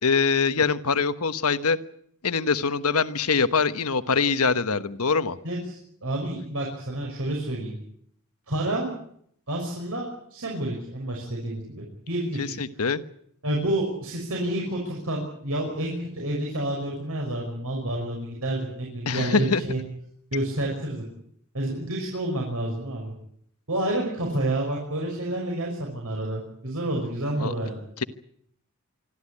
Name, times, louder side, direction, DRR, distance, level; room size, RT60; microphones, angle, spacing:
voice 1, 0.0-1.8 2.2-5.4 12.4-13.0 19.1-19.6 27.4-27.5, left 5 dB, 85° left, 12 dB, 1.3 m, -23 dB
voice 2, 5.4-7.8 8.5-8.9 9.5-12.5 13.4-19.8 20.3-21.1 21.5-23.1 23.7-27.8, right 1 dB, 75° right, -1 dB, 5.9 m, -29 dB
25.5 x 14.0 x 9.9 m, 0.68 s
head